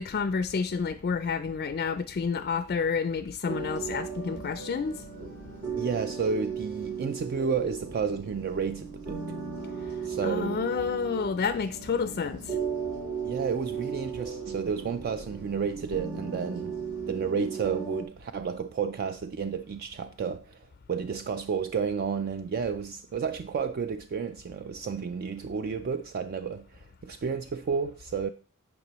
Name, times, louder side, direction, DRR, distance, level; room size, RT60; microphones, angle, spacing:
voice 1, 0.0-5.0 9.8-9.9 10.2-12.6, left 5 dB, 45° left, 0.4 m, -29 dB
sound 1, 3.5-18.0, right 6 dB, 65° right, 2.2 m, -36 dB
voice 2, 5.8-9.4 10.0-10.6 13.2-16.8 17.1-28.3, right 6 dB, 45° right, 0.3 m, -31 dB
9.5 x 5.1 x 3.0 m
head